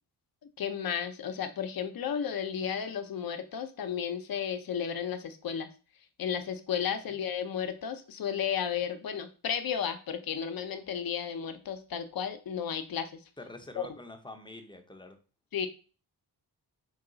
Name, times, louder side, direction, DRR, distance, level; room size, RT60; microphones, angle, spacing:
voice 1, 0.6-5.7 6.2-13.1 15.5-15.7, left 8 dB, 60° left, 9 dB, 0.6 m, -33 dB
voice 2, 13.4-15.2, left 2 dB, 10° left, 6 dB, 0.6 m, -46 dB
4.7 x 2.3 x 3.8 m, 0.36 s
wide cardioid pair, 115°, 41 cm